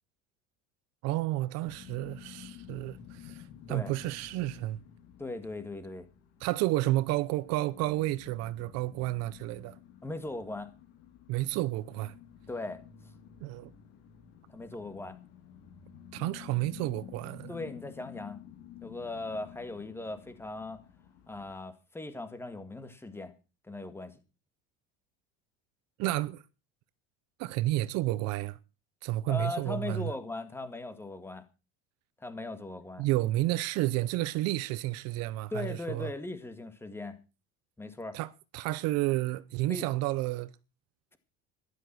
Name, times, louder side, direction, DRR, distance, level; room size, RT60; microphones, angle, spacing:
voice 1, 1.0-4.8 6.4-9.8 11.3-12.1 13.4-13.7 16.1-17.5 26.0-26.4 27.4-28.6 29.0-30.1 33.0-36.1 38.1-40.5, right 17 dB, 55° right, 0.8 m, -31 dB
sound 1, 1.6-21.5, left 10 dB, 55° left, 3.5 m, -51 dB
voice 2, 5.2-6.1 10.0-10.7 12.5-12.8 14.5-15.2 17.5-18.4 18.8-20.8 21.3-23.3 23.6-24.2 29.3-31.4 32.2-33.1 35.5-37.2 37.8-38.2 39.7-39.9, left 2 dB, 10° left, 2.0 m, -38 dB
13.0 x 12.0 x 6.1 m
cardioid pair, 150°, 30 cm